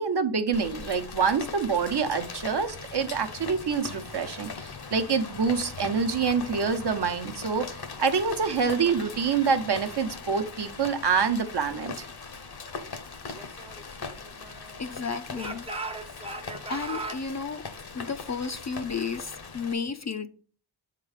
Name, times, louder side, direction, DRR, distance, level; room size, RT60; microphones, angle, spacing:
voice 1, 0.0-11.9, right 5 dB, 55° right, 0.8 m, -26 dB
Rain, 0.5-19.7, left 5 dB, 50° left, 0.9 m, -40 dB
Speech / Shout, 13.3-14.9 15.3-17.2, right 3 dB, 15° right, 0.5 m, -38 dB
voice 2, 14.8-15.7 16.7-17.6 17.9-20.3, left 5 dB, 35° left, 0.5 m, -32 dB
7.2 x 3.9 x 4.9 m
wide cardioid pair, 75°, 48 cm